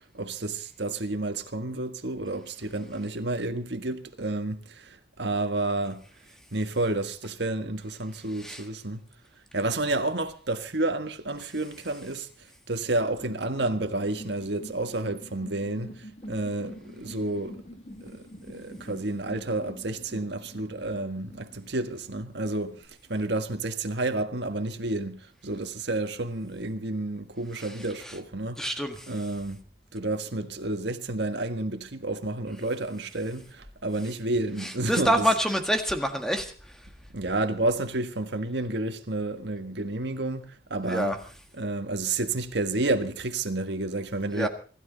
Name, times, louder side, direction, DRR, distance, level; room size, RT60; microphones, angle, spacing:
voice 1, 0.1-6.1 6.5-9.0 9.5-17.6 18.0-28.6 29.1-29.6 29.9-35.2 37.1-41.2 41.6-44.5, right 2 dB, 70° right, 1.6 m, -30 dB
voice 2, 8.3-8.7 27.6-28.2 28.6-29.3 34.6-36.9 40.8-41.2 44.3-44.5, equal, 5° left, 1.7 m, -28 dB
sound 1, 13.1-22.9, equal, 35° left, 2.2 m, -46 dB
25.0 x 12.5 x 4.0 m
head